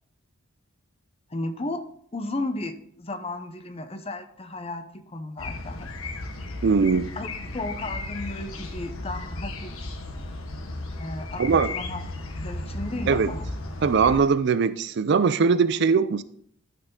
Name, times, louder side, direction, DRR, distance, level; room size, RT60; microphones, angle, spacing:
voice 1, 1.3-1.8 2.1-5.9 7.2-9.7 11.0-12.0 12.4-13.5, left 2 dB, 30° left, 9 dB, 0.7 m, -34 dB
sound 1, 5.4-14.2, left 2 dB, 80° left, 1.2 m, -35 dB
voice 2, 6.6-7.1 11.4-11.7 13.1-13.3 13.8-16.2, right 5 dB, 55° right, 14 dB, 0.4 m, -21 dB
11.5 x 5.6 x 3.7 m, 0.66 s
head